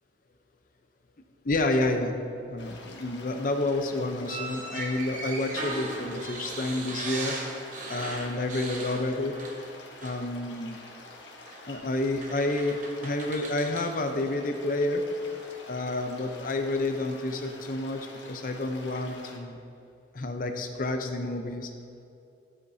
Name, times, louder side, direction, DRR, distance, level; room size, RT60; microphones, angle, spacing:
voice 1, 1.4-2.1 2.5-7.3 7.9-9.3 10.0-10.8 11.7-12.8 13.0-15.1 15.7-19.6 20.1-21.7, left 2 dB, 45° left, 5 dB, 0.7 m, -29 dB
sound 1, 2.6-19.4, left 2 dB, 70° left, 1.2 m, -47 dB
sound 2, 4.2-9.7 10.0-10.2 11.5-11.6 12.2-13.9, right 2 dB, 40° right, 1.0 m, -38 dB
12.0 x 8.1 x 2.8 m, 2.6 s
head